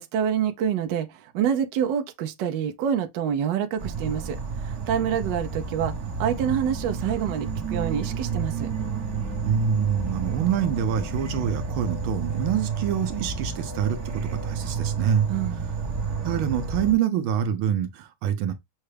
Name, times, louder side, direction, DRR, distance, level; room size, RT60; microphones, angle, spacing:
voice 1, 0.0-5.9 6.2-8.7 15.3-15.7, right 8 dB, 70° right, 1.2 m, -27 dB
Insect / Frog, 3.8-16.9, right 5 dB, 40° right, 1.2 m, -30 dB
voice 2, 9.4-15.6 16.2-18.5, right 8 dB, 85° right, 1.5 m, -26 dB
6.4 x 2.3 x 3.3 m
omnidirectional pair, 2.3 m